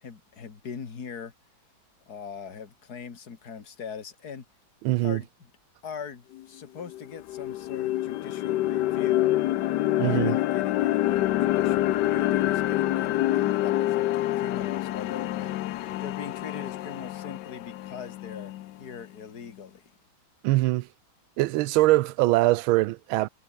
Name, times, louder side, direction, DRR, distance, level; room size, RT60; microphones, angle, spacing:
voice 1, 0.0-1.3 2.1-4.4 5.0-5.3 5.8-9.3 10.0-18.5 18.8-19.8, left 6 dB, 50° left, 2.7 m, -41 dB
voice 2, 4.8-5.2 10.0-10.4 20.4-20.9 21.4-23.3, right 18 dB, 90° right, 1.4 m, -22 dB
sound 1, 6.4-6.5 6.9-18.9, left 15 dB, 70° left, 1.1 m, -27 dB
omnidirectional pair, 2.2 m